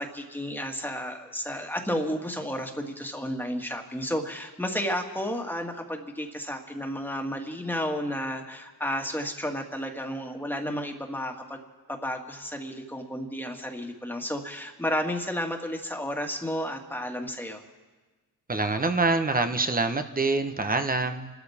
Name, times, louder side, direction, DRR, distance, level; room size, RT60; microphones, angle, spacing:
voice 1, 0.0-11.6 11.9-17.6, equal, 5° left, 2 dB, 2.1 m, -32 dB
voice 2, 18.5-21.3, right 3 dB, 20° right, 7 dB, 1.1 m, -25 dB
28.5 x 13.0 x 3.6 m, 1.3 s
cardioid pair, 70°, 39 cm